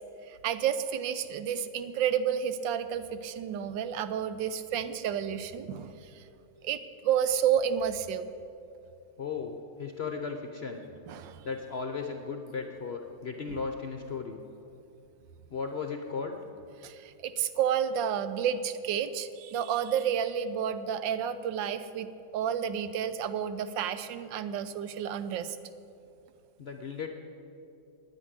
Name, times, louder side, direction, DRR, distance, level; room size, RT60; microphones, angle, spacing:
voice 1, 0.4-5.9 6.6-6.8 7.0-8.3 11.1-11.4 16.8-16.9 17.2-25.6, right 8 dB, 85° right, 12 dB, 1.4 m, -30 dB
voice 2, 9.2-10.8 11.4-14.4 15.5-16.4 26.6-27.1, left 5 dB, 55° left, 5 dB, 0.7 m, -36 dB
9.6 x 9.4 x 9.7 m, 2.7 s
omnidirectional pair, 2.0 m